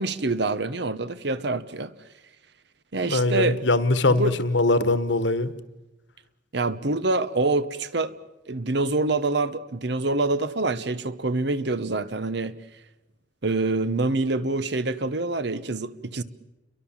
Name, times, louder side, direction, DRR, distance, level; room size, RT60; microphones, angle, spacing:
voice 1, 0.0-1.9 2.9-3.6 4.1-4.4 6.5-8.1 8.5-12.5 13.4-16.2, right 3 dB, 60° right, 1.1 m, -26 dB
voice 2, 3.1-5.5, left 2 dB, 70° left, 1.4 m, -22 dB
29.5 x 23.0 x 7.4 m
head